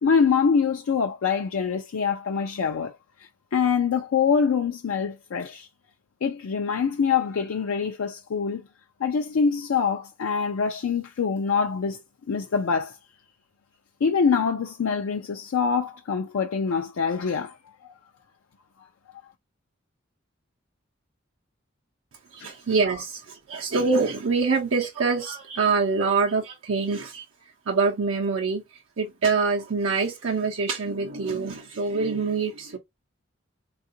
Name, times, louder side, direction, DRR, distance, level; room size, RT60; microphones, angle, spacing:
voice 1, 0.0-2.9 3.2-5.7 6.2-8.6 9.0-12.0 12.3-13.0 14.0-17.6 17.8-17.9 22.4-22.5, left 6 dB, 80° left, 0.4 m, -24 dB
voice 2, 22.3-27.2 27.7-32.8, right 4 dB, 75° right, 0.6 m, -25 dB
3.6 x 2.4 x 2.5 m
head